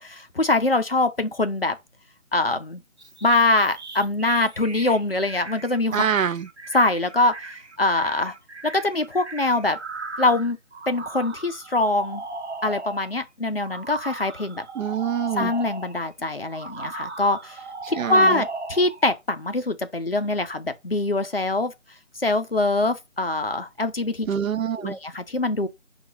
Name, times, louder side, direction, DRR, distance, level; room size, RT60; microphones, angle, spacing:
voice 1, 0.0-1.8 2.3-2.8 3.2-6.0 6.7-7.3 7.8-8.3 8.6-9.8 10.2-10.6 10.9-12.2 12.6-14.6 15.4-21.7 22.2-24.3 24.8-25.7, left 2 dB, 45° left, 0.5 m, -23 dB
sound 1, 3.0-13.2 13.6-16.1 16.5-19.0, right 3 dB, 55° right, 1.0 m, -37 dB
voice 2, 5.9-6.5 14.8-15.5 18.0-18.4 24.3-25.0, right 8 dB, 80° right, 0.5 m, -25 dB
5.1 x 2.3 x 4.5 m
figure-of-eight pair, 165°, 40 cm